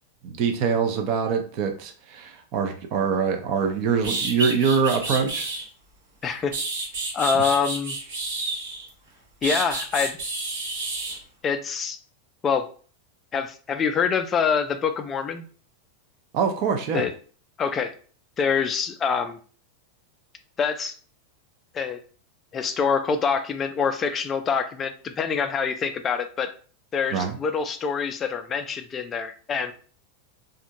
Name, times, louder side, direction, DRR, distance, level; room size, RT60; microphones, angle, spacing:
voice 1, 0.2-5.5 7.3-7.4 16.3-17.0 27.1-27.3, right 6 dB, 40° right, 5 dB, 0.5 m, -24 dB
sound 1, 3.6-3.7 4.0-5.6 6.2-8.9 9.4-11.2, right 3 dB, 65° right, 1.1 m, -30 dB
voice 2, 6.2-6.5 7.1-8.0 9.4-10.2 11.4-12.0 12.4-12.7 13.3-15.4 16.9-17.1 17.6-17.9 18.4-19.4 20.6-21.0 21.7-22.0 22.5-26.5 26.9-29.7, left 6 dB, 20° left, 7 dB, 0.3 m, -25 dB
2.4 x 2.2 x 2.8 m, 0.41 s
supercardioid pair, 155°, 0 cm